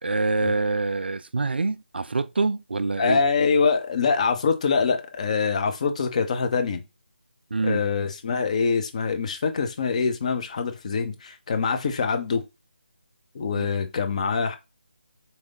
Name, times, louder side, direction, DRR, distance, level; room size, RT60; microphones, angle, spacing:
voice 1, 0.0-3.2 7.5-7.8 13.6-13.7, right 3 dB, 65° right, 0.4 m, -25 dB
voice 2, 3.0-6.8 7.6-12.4 13.3-14.6, left 5 dB, 35° left, 0.9 m, -24 dB
4.1 x 3.2 x 3.9 m
figure-of-eight pair, 150°, 6 cm